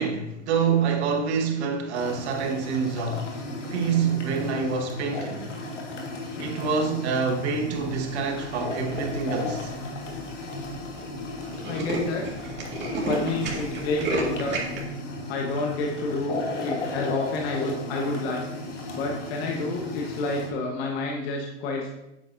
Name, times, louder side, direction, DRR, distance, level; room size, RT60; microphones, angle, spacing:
voice 1, 0.0-3.3 3.7-5.5 6.4-9.7, right 5 dB, 65° right, 1.6 m, -26 dB
Brewing coffee, 1.9-20.5, left 2 dB, 85° left, 1.7 m, -35 dB
Tools, 8.7-9.1 9.8-9.9 10.1-10.2 10.4-10.6 10.9-11.0 11.3-14.8, right 2 dB, 30° right, 2.0 m, -31 dB
voice 2, 11.6-12.4 13.0-14.6 15.3-18.4 18.9-21.9, left 2 dB, 60° left, 1.3 m, -29 dB
8.3 x 7.0 x 2.7 m
hypercardioid pair, 100°, 36 cm